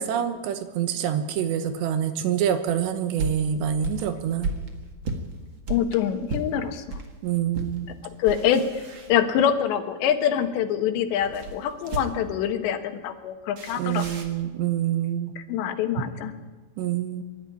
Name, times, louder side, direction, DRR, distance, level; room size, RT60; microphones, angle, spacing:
voice 1, 0.0-4.5 7.2-7.9 13.8-15.4 16.0-16.1 16.8-17.2, right 9 dB, 75° right, 9 dB, 3.3 m, -26 dB
sound 1, 2.7-7.1 7.5-7.8 8.1-9.6 11.2-12.4 13.6-14.4, right 2 dB, 60° right, 1.3 m, -34 dB
voice 2, 5.7-6.8 8.2-14.1 15.4-16.3, left 9 dB, 75° left, 6 dB, 3.5 m, -25 dB
24.0 x 12.0 x 9.9 m, 1.3 s
omnidirectional pair, 5.2 m